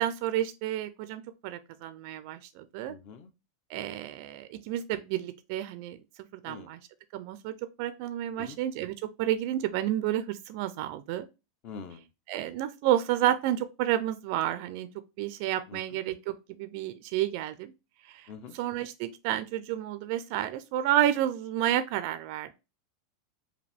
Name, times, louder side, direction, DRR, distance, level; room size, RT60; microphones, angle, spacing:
voice 1, 0.0-3.0 3.7-6.0 6.4-6.8 7.1-11.3 12.3-14.9 15.2-17.7 18.1-18.3 18.5-22.5, right 12 dB, 40° right, 0.4 m, -30 dB
voice 2, 2.9-3.3 6.5-6.7 8.4-8.6 11.6-12.0 15.7-15.8 18.3-18.6, left 5 dB, 30° left, 0.5 m, -44 dB
5.1 x 2.6 x 3.3 m
supercardioid pair, 175°, 2 cm